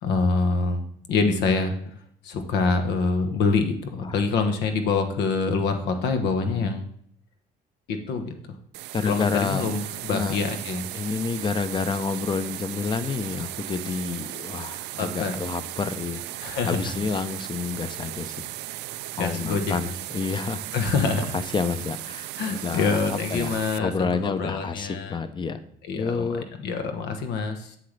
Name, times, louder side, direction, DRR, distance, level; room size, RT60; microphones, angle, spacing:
voice 1, 0.0-1.7 2.2-6.8 7.9-8.6 9.0-10.9 15.0-15.3 16.4-16.8 19.2-19.9 20.7-21.3 22.4-25.2 25.8-27.8, left 4 dB, 85° left, 6 dB, 1.2 m, -26 dB
sound 1, 8.7-23.8, right 16 dB, 85° right, 0.4 m, -36 dB
voice 2, 8.9-9.6 10.1-10.4 10.9-18.3 19.2-20.6 21.3-25.6 25.9-26.4, left 5 dB, 30° left, 11 dB, 0.7 m, -29 dB
7.8 x 7.7 x 3.3 m, 0.65 s
cardioid pair, 110°, 17 cm